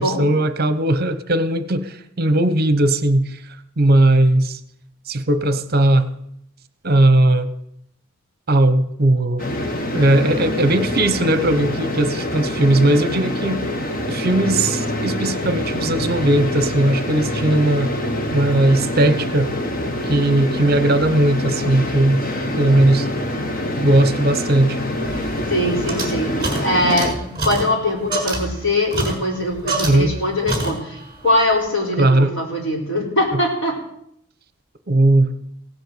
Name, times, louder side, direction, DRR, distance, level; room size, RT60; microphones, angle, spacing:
voice 1, 0.0-3.4 3.8-4.6 5.1-6.1 6.8-7.5 8.5-9.4 9.9-13.6 14.1-17.9 18.3-19.5 20.1-22.2 22.6-23.1 23.8-24.8 29.8-30.2 32.0-32.3 34.9-35.3, right 1 dB, 45° right, 12 dB, 0.9 m, -17 dB
sound 1, 9.4-27.1, left 1 dB, 40° left, 1.5 m, -25 dB
sound 2, 25.0-30.2 30.5-31.1, right 2 dB, 20° right, 4.9 m, -27 dB
voice 2, 25.5-31.0 31.2-33.8, left 1 dB, 60° left, -1 dB, 4.4 m, -22 dB
16.5 x 7.7 x 8.0 m, 0.73 s
head